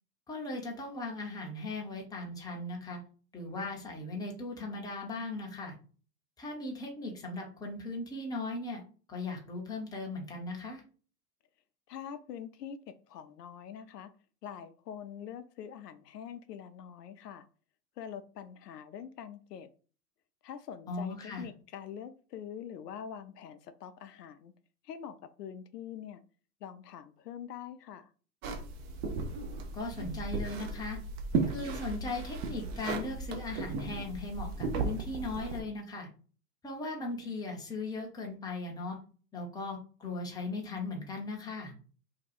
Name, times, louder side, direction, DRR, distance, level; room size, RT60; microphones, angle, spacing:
voice 1, 0.3-3.0 3.3-5.7 6.4-8.8 9.1-10.8 20.9-21.5 29.7-31.0 31.5-36.1 36.6-39.0 39.3-41.7, left 2 dB, 10° left, 0.7 m, -38 dB
voice 2, 11.9-14.1 14.4-17.5 18.0-19.7 20.4-24.5 24.8-26.2 26.6-28.1, left 8 dB, 75° left, 0.6 m, -44 dB
sound 1, 28.4-35.6, right 4 dB, 40° right, 0.6 m, -35 dB
2.8 x 2.2 x 4.1 m
hypercardioid pair, 115°, 49 cm